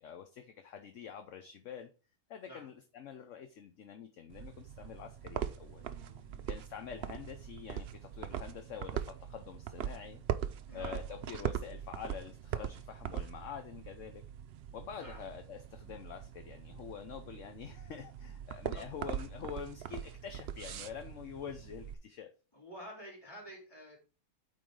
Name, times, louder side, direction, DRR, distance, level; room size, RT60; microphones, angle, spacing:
voice 1, 0.0-1.9 2.3-5.8 6.5-10.2 10.7-14.2 14.7-22.3, left 8 dB, 60° left, 7 dB, 1.0 m, -46 dB
sound 1, 4.3-21.9, right 9 dB, 65° right, 0.6 m, -41 dB
voice 2, 5.8-6.6 10.6-11.0 15.0-15.2 18.7-18.9 22.5-24.0, equal, 15° left, -2 dB, 3.5 m, -50 dB
8.9 x 3.9 x 4.8 m, 0.34 s
omnidirectional pair, 1.6 m